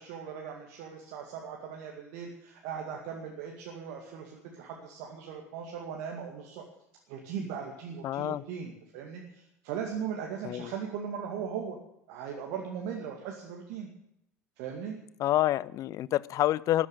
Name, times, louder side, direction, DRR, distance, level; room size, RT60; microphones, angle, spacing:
voice 1, 0.0-6.6 7.1-11.8 12.1-13.9 14.6-15.0, right 7 dB, 55° right, 1 dB, 2.3 m, -38 dB
voice 2, 8.0-8.4 10.4-10.7 15.2-16.9, left 14 dB, 40° left, 21 dB, 0.5 m, -27 dB
13.5 x 11.0 x 9.0 m, 0.78 s
figure-of-eight pair, 70°, 8 cm